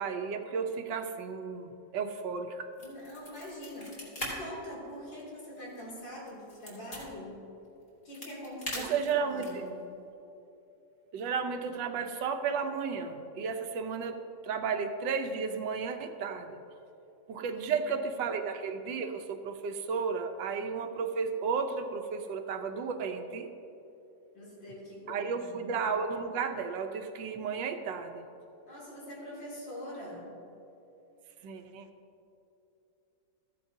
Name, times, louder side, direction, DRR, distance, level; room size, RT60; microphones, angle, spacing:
voice 1, 0.0-2.7 8.7-9.6 11.1-16.6 17.3-23.5 25.1-28.2 31.4-31.9, right 5 dB, 80° right, 7 dB, 1.4 m, -33 dB
sound 1, 2.7-4.3 4.6-4.7 5.2-7.0 7.8-9.7, equal, 30° left, 2.6 m, -41 dB
voice 2, 2.8-7.4 8.0-9.8 17.5-17.9 18.1-18.2 24.3-25.7 28.7-30.3, equal, 80° left, -5 dB, 3.4 m, -44 dB
14.0 x 10.5 x 2.7 m, 2.9 s
omnidirectional pair, 2.0 m